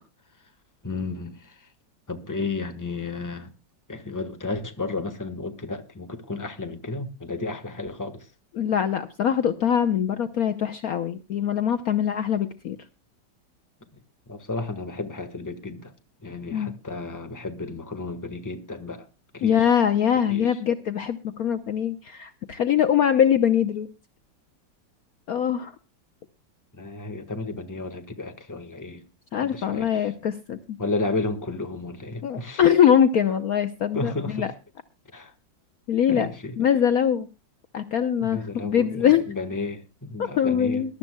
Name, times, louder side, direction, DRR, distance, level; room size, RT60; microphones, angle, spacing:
voice 1, 0.8-1.5 2.1-3.5 3.9-8.3 14.3-15.9 16.2-19.0 19.3-19.7 20.3-20.6 26.8-29.0 29.4-30.0 30.8-32.6 33.9-34.5 35.1-35.3 36.1-36.6 38.2-41.0, left 3 dB, 10° left, 1.3 m, -32 dB
voice 2, 8.5-12.8 16.5-16.7 19.4-23.9 25.3-25.7 29.3-30.8 32.2-34.5 35.9-36.3 36.6-37.3 37.7-39.2 40.2-41.0, left 9 dB, 60° left, 1.1 m, -23 dB
22.0 x 12.0 x 2.3 m
omnidirectional pair, 2.0 m